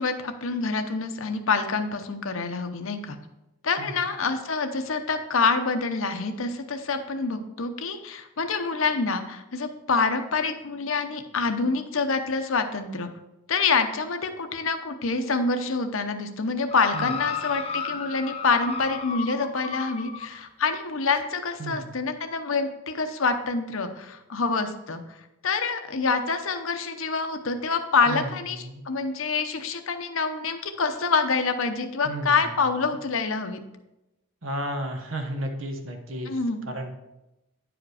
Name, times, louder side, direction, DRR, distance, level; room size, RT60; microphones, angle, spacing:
voice 1, 0.0-3.2 3.6-13.1 13.5-25.0 25.4-33.6 36.3-36.6, left 4 dB, 70° left, 8 dB, 0.8 m, -26 dB
sound 1, 16.7-20.3 21.2-21.3, left 5 dB, 25° left, 0.6 m, -33 dB
voice 2, 21.6-21.9 28.1-28.8 32.0-32.8 34.4-36.4 36.7-36.9, right 1 dB, 65° right, 5 dB, 1.2 m, -33 dB
9.9 x 5.0 x 4.8 m, 0.95 s
head